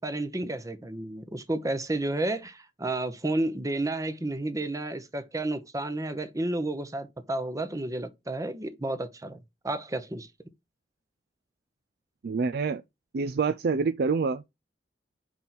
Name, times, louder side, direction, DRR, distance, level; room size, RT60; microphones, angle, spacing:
voice 1, 0.0-9.4 9.6-10.3, right 2 dB, 20° right, 0.9 m, -31 dB
voice 2, 12.2-12.8 13.1-14.5, right 4 dB, 60° right, 0.4 m, -27 dB
5.3 x 4.5 x 4.1 m
head